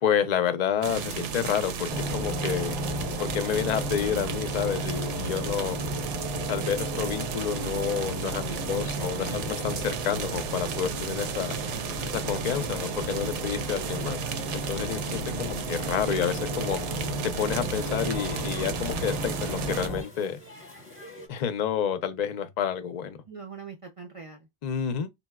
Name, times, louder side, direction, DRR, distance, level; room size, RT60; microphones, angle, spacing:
voice 1, 0.0-2.8 3.2-5.8 6.5-11.5 12.1-14.2 14.5-16.8 17.2-20.4 21.3-23.2 24.6-25.1, left 8 dB, 55° left, 0.5 m, -29 dB
sound 1, 0.8-19.9, right 6 dB, 85° right, 0.9 m, -34 dB
sound 2, 1.9-20.0, equal, 30° right, 0.7 m, -34 dB
voice 2, 8.5-9.5 23.3-24.5, right 5 dB, 55° right, 0.4 m, -43 dB
sound 3, 14.2-21.3, left 2 dB, 15° left, 0.8 m, -48 dB
4.0 x 2.0 x 2.2 m
omnidirectional pair, 1.2 m